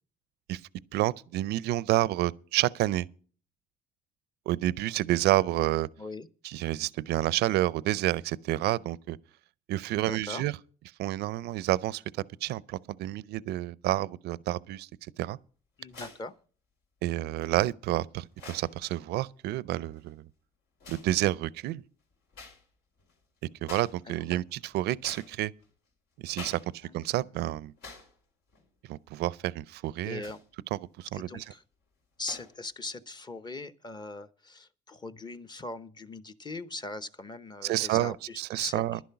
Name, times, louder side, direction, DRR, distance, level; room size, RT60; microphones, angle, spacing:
voice 1, 0.9-3.1 4.5-5.9 6.4-9.2 9.7-10.5 11.0-12.0 12.4-14.9 15.2-15.4 17.0-20.3 20.9-21.8 23.6-25.5 26.2-26.6 26.9-27.7 28.9-30.2 30.7-31.4 37.6-39.0, right 15 dB, 75° right, 0.5 m, -29 dB
voice 2, 10.0-10.5 15.8-16.3 24.1-24.4 26.8-27.0 30.0-30.4 31.1-31.6 32.2-39.0, left 3 dB, 25° left, 0.8 m, -40 dB
sound 1, 15.9-16.3 17.4-17.5 18.3-18.8 19.8-20.1 20.8-21.1 22.3-22.6 23.0-23.1 23.6-24.0 24.4-25.7 26.3-26.7 27.0-27.1 27.8-28.2 28.5-28.6 30.2-30.5 31.2-31.6 32.3-32.6, left 4 dB, 85° left, 4.4 m, -47 dB
11.0 x 10.5 x 5.8 m
cardioid pair, 110°, 17 cm